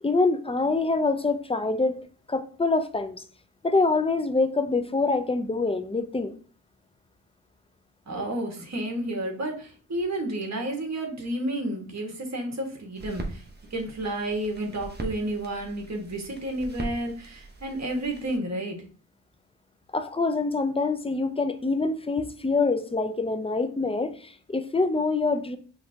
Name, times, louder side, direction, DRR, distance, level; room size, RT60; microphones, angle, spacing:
voice 1, 0.0-3.2 3.6-6.3 19.9-25.6, left 3 dB, 15° left, 0.6 m, -25 dB
voice 2, 8.1-13.4 13.7-18.8, right 1 dB, 40° right, 1.7 m, -31 dB
sound 1, 13.0-18.4, right 2 dB, 25° right, 1.1 m, -40 dB
5.6 x 3.3 x 2.8 m
cardioid pair, 60°, 40 cm